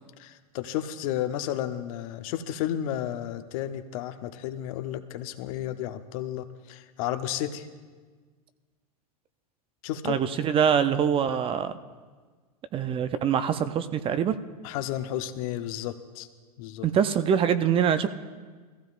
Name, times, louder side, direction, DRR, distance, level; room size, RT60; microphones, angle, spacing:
voice 1, 0.2-7.7 9.8-10.2 14.6-16.3 16.6-16.9, left 11 dB, 60° left, 9 dB, 0.8 m, -32 dB
voice 2, 10.0-11.7 12.7-14.3 16.8-18.1, right 8 dB, 25° right, 11 dB, 0.5 m, -24 dB
21.0 x 15.0 x 2.5 m, 1.5 s
hypercardioid pair, 115°, 20 cm